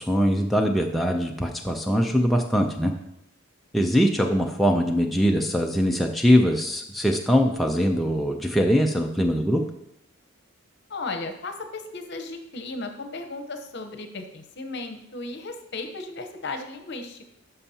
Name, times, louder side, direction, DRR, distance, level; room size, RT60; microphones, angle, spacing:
voice 1, 0.0-2.9 3.7-9.6, equal, ahead, 0 dB, 0.4 m, -22 dB
voice 2, 10.9-17.3, left 3 dB, 55° left, 6 dB, 0.9 m, -35 dB
12.5 x 5.5 x 2.8 m, 0.80 s
head